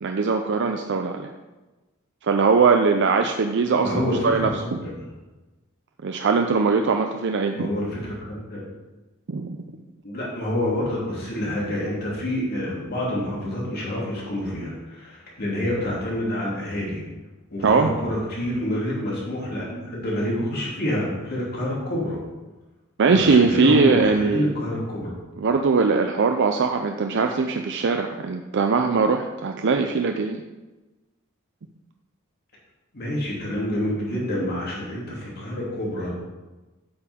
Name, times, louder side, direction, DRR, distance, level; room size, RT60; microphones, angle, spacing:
voice 1, 0.0-1.3 2.2-3.9 4.2-4.5 6.0-7.7 9.3-9.6 17.6-17.9 23.0-24.5 25.4-30.4, right 4 dB, 60° right, 5 dB, 0.5 m, -20 dB
voice 2, 3.7-5.0 7.6-8.6 10.0-17.0 17.5-22.2 23.1-25.1 32.9-36.1, left 1 dB, 50° left, -5 dB, 2.7 m, -27 dB
8.7 x 7.0 x 3.6 m, 1.1 s
head